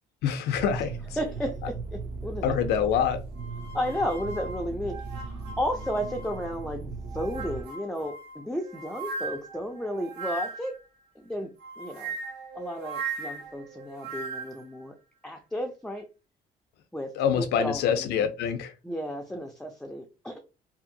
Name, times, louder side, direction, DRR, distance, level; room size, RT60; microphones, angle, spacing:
voice 1, 0.2-1.0 2.4-3.2 17.2-18.7, left 8 dB, 75° left, 0.5 m, -25 dB
sound 1, 0.5-7.6, right 4 dB, 45° right, 0.6 m, -38 dB
voice 2, 1.2-2.8 3.7-10.7 11.2-11.5 11.8-12.2 12.5-14.9 15.2-16.0 16.9-18.3 18.8-20.4, equal, 5° left, 0.4 m, -33 dB
sound 2, 3.4-6.6 7.1-10.8 11.6-14.6, right 3 dB, 80° right, 1.3 m, -38 dB
2.7 x 2.4 x 2.6 m
cardioid pair, 110°, 17 cm